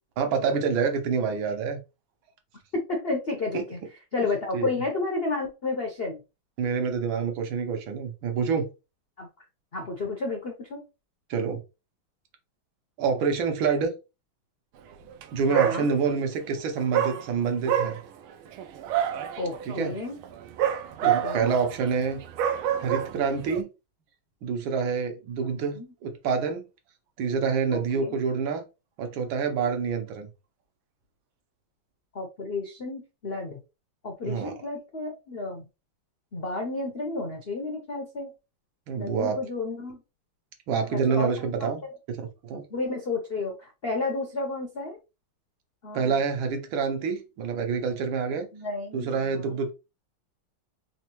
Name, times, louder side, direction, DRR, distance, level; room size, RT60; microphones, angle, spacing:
voice 1, 0.2-1.8 3.5-3.6 4.5-4.7 6.6-8.7 11.3-11.6 13.0-13.9 15.3-18.0 19.7-19.9 21.0-22.2 22.8-23.7 24.4-26.6 27.2-28.6 29.0-30.3 34.2-34.5 38.9-39.4 40.7-42.6 45.9-48.5 48.9-49.7, right 5 dB, 75° right, 1.6 m, -27 dB
voice 2, 2.9-3.8 4.1-6.2 9.2-9.3 9.7-10.8 15.5-15.9 19.4-20.2 21.0-21.5 25.5-25.9 27.7-28.2 32.1-33.6 34.0-35.7 36.3-38.3 39.0-40.0 40.7-41.9 42.7-45.0 45.8-46.2 48.3-49.6, left 3 dB, 65° left, 0.5 m, -32 dB
Dog, 15.1-15.3 15.5-16.3 16.9-23.6, right 10 dB, 90° right, 1.5 m, -28 dB
4.2 x 3.2 x 3.0 m
omnidirectional pair, 2.3 m